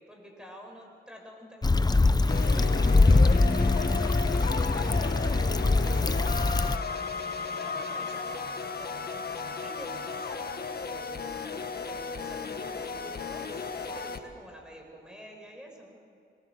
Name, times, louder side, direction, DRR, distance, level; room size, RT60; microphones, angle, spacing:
voice 1, 0.0-16.0, equal, 5° right, 1 dB, 7.5 m, -48 dB
Stream / Traffic noise roadway noise / Trickle dribble, 1.6-6.8, left 3 dB, 20° left, 0.8 m, -23 dB
sound 1, 2.3-14.2, left 5 dB, 60° left, 1.6 m, -35 dB
24.5 x 21.0 x 8.1 m, 2.5 s
cardioid pair, 65°, 18 cm